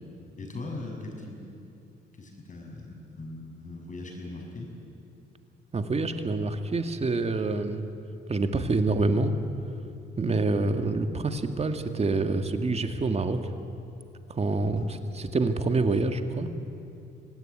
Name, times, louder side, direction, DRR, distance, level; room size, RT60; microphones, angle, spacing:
voice 1, 0.4-1.3 2.1-4.7 14.7-14.9, left 2 dB, 40° left, 1 dB, 6.5 m, -39 dB
voice 2, 5.7-7.8 8.3-9.3 10.2-13.4 14.3-16.5, right 3 dB, 30° right, 7 dB, 1.9 m, -26 dB
25.5 x 18.0 x 9.5 m, 2.7 s
cardioid pair, 90°, 20 cm